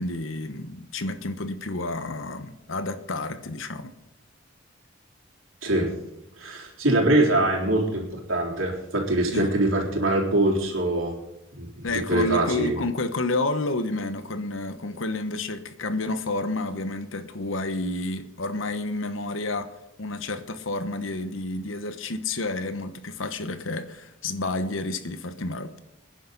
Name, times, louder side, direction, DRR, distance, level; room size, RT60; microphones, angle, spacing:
voice 1, 0.0-3.9 9.3-9.5 11.8-19.7 20.0-25.8, left 2 dB, 75° left, 10 dB, 1.1 m, -30 dB
voice 2, 6.4-11.1 11.6-11.7 12.1-12.8, right 1 dB, 85° right, -1 dB, 3.6 m, -23 dB
24.5 x 10.5 x 4.0 m, 0.88 s
head